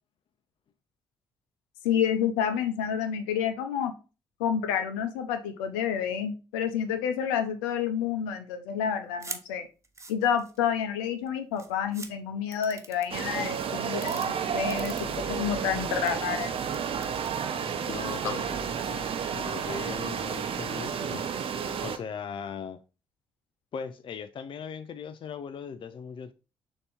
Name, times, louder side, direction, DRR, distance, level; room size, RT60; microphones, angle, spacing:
voice 1, 1.8-3.9 4.4-9.7 10.1-16.6 18.2-18.3, left 8 dB, 75° left, 0.8 m, -29 dB
sound 1, 9.2-9.4 9.8-10.7 11.3-11.4 11.6-12.1 12.5-13.2 13.9-14.3 14.7-15.5 15.9-16.1 16.7-17.3, right 3 dB, 25° right, 1.1 m, -41 dB
sound 2, 13.1-22.0, right 7 dB, 50° right, 0.8 m, -31 dB
voice 2, 17.9-21.3 21.8-22.8 23.7-26.3, left 6 dB, 45° left, 0.5 m, -39 dB
6.8 x 2.9 x 5.1 m
figure-of-eight pair, 40°, 12 cm